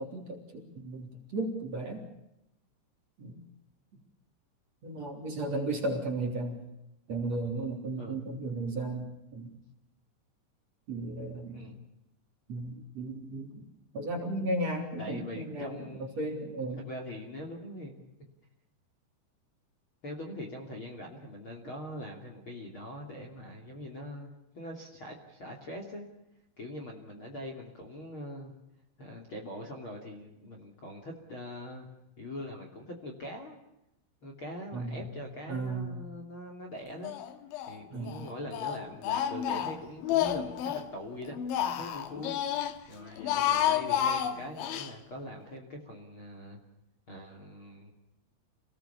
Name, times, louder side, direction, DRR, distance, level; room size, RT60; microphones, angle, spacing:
voice 1, 0.0-2.0 3.2-3.4 4.8-6.6 7.1-9.5 10.9-11.7 12.5-13.6 13.9-15.9 16.2-16.8 34.7-35.0 35.4-35.9 37.9-38.3, right 2 dB, 35° right, 1 dB, 4.3 m, -35 dB
voice 2, 11.4-11.8 15.0-18.0 20.0-26.1 26.6-28.5 29.0-31.9 32.2-33.6 34.2-37.1 37.7-41.4 41.7-42.4 42.9-46.6 47.1-47.9, left 1 dB, 30° left, 1 dB, 3.0 m, -42 dB
Speech, 37.0-37.8 38.1-40.9 41.3-42.7 43.1-44.9, left 10 dB, 80° left, 3.8 m, -30 dB
28.5 x 19.5 x 7.0 m, 0.87 s
omnidirectional pair, 5.4 m